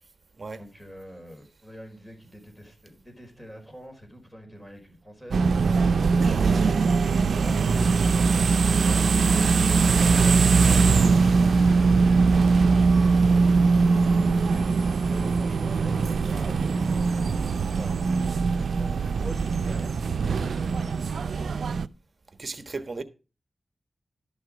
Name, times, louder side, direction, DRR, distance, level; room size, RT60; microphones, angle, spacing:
voice 1, 0.6-5.6 5.9-6.9 7.4-9.4 15.1-18.1 18.6-21.7, equal, 10° left, 4.7 m, -45 dB
sound 1, 5.3-21.9, right 4 dB, 80° right, 0.5 m, -21 dB
voice 2, 6.0-6.9 18.6-18.9 22.3-23.0, right 3 dB, 45° right, 1.3 m, -38 dB
sound 2, 9.1-16.4, left 4 dB, 75° left, 2.6 m, -47 dB
12.5 x 6.3 x 4.9 m
cardioid pair, 60°, 0 cm